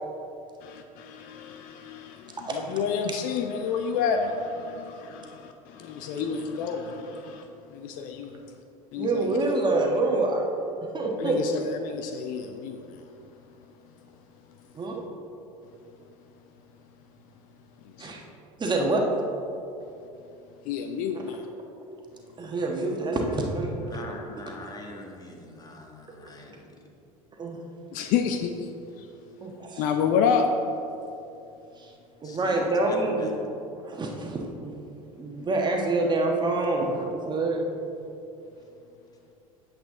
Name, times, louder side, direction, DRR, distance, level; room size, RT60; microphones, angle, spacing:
voice 1, 0.6-7.5 7.7-8.4 8.9-9.3 11.2-11.5 11.8-13.0 18.0-18.1 20.6-21.4 27.9-28.7 29.0-29.1 29.8-30.5, left 6 dB, 50° left, 5 dB, 0.6 m, -29 dB
voice 2, 2.4-2.7 3.1-3.2 9.0-10.4 10.9-11.4 14.7-15.0 18.0-18.2 18.6-19.1 22.4-24.0 27.4-27.6 29.4-29.9 31.8-31.9 32.2-33.3 33.8-34.8 35.1-37.8, right 2 dB, 25° right, 1 dB, 1.3 m, -27 dB
voice 3, 23.7-26.7 32.2-33.3, left 2 dB, 20° left, 1 dB, 1.4 m, -42 dB
8.8 x 7.5 x 3.7 m, 2.8 s
figure-of-eight pair, 75°, 18 cm